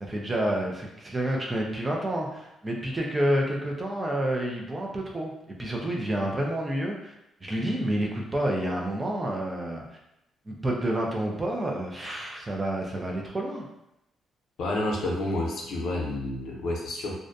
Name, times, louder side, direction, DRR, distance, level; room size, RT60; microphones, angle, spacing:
voice 1, 0.1-7.1 7.4-9.8 10.5-13.6, right 1 dB, 20° right, -1 dB, 0.5 m, -29 dB
voice 2, 14.6-17.2, left 1 dB, 70° left, -2 dB, 0.6 m, -29 dB
2.5 x 2.2 x 2.5 m, 0.86 s
cardioid pair, 90°, 0 cm